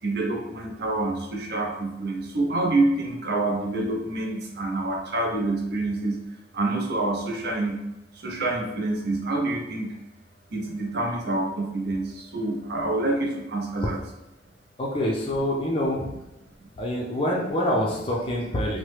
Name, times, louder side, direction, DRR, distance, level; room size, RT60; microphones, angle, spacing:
voice 1, 0.0-6.2 6.5-7.8 8.1-9.9 10.5-14.0 16.6-16.7, right 2 dB, 60° right, 0 dB, 0.6 m, -27 dB
voice 2, 14.8-16.1 16.8-18.8, left 1 dB, 30° left, -2 dB, 0.4 m, -26 dB
2.9 x 2.1 x 3.1 m, 0.94 s
head